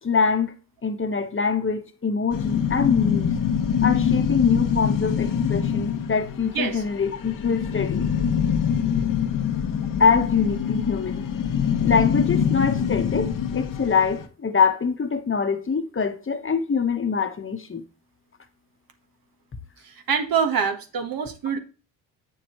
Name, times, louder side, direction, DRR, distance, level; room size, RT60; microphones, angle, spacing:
voice 1, 0.0-0.5 0.8-3.3 3.8-8.1 10.0-11.3 11.8-17.8, left 5 dB, 30° left, 1.2 m, -24 dB
sound 1, 2.3-14.3, left 8 dB, 50° left, 1.0 m, -24 dB
voice 2, 19.8-21.6, right 6 dB, 55° right, 1.3 m, -25 dB
7.6 x 6.4 x 3.1 m
supercardioid pair, 70°, 41 cm